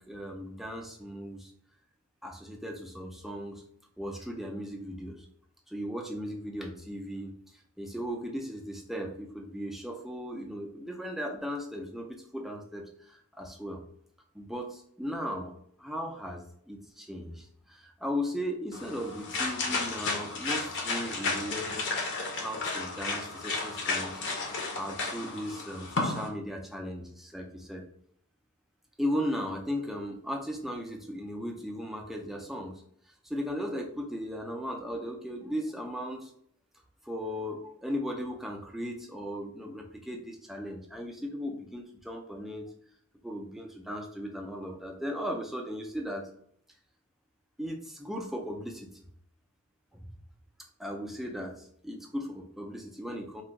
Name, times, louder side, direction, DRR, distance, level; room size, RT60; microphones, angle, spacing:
voice 1, 0.0-1.5 2.2-3.6 4.0-5.3 5.7-7.3 7.8-13.8 14.3-21.9 22.4-24.2 24.8-27.8 29.0-32.8 33.2-36.3 37.0-42.7 43.2-46.3 47.6-48.9 49.9-50.1 50.8-53.4, equal, ahead, 2 dB, 0.3 m, -37 dB
sound 1, 18.7-26.3, left 3 dB, 55° left, 0.6 m, -33 dB
2.3 x 2.1 x 3.9 m, 0.67 s
head